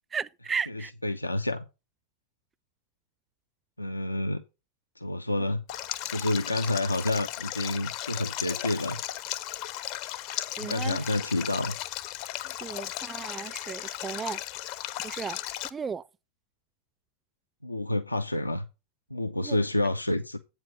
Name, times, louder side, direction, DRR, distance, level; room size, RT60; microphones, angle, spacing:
voice 1, 0.1-0.9 10.6-11.0 12.6-14.4 15.0-15.4 15.7-16.0 19.4-19.6, right 6 dB, 20° right, 0.4 m, -34 dB
voice 2, 0.7-1.7 3.8-4.4 5.0-5.6 6.1-9.0 10.6-11.7 17.6-18.7 19.1-20.4, left 1 dB, 85° left, 0.5 m, -29 dB
Stream, 5.7-15.7, left 14 dB, 45° left, 0.6 m, -36 dB
8.2 x 4.7 x 6.5 m
figure-of-eight pair, 90°, 0 cm